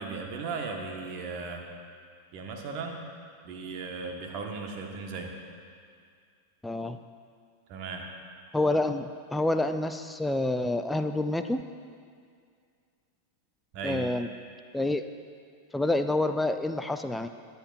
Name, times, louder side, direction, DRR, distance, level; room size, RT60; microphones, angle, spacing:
voice 1, 0.0-1.6 2.3-3.0 3.4-5.3 7.7-8.0 13.7-14.0, right 4 dB, 40° right, 2 dB, 1.3 m, -36 dB
voice 2, 6.6-7.0 8.5-11.6 13.8-14.3 14.7-15.0 15.7-17.3, left 2 dB, 5° left, 8 dB, 0.4 m, -28 dB
22.5 x 8.2 x 2.5 m, 2.2 s
figure-of-eight pair, 90°, 0 cm